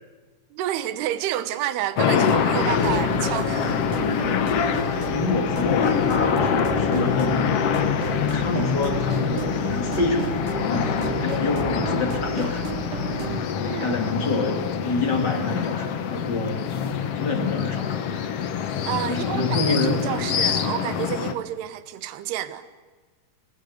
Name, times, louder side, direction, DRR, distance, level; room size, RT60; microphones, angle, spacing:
voice 1, 0.5-3.7 13.6-14.0 18.8-22.7, right 12 dB, 80° right, 3.1 m, -29 dB
sound 1, 2.0-21.3, left 7 dB, 75° left, 1.4 m, -25 dB
sound 2, 2.2-13.4, right 5 dB, 60° right, 3.0 m, -33 dB
voice 2, 4.9-7.7 8.1-12.7 13.6-18.1 19.1-20.1, left 3 dB, 30° left, 2.8 m, -27 dB
28.5 x 20.0 x 6.7 m
omnidirectional pair, 4.6 m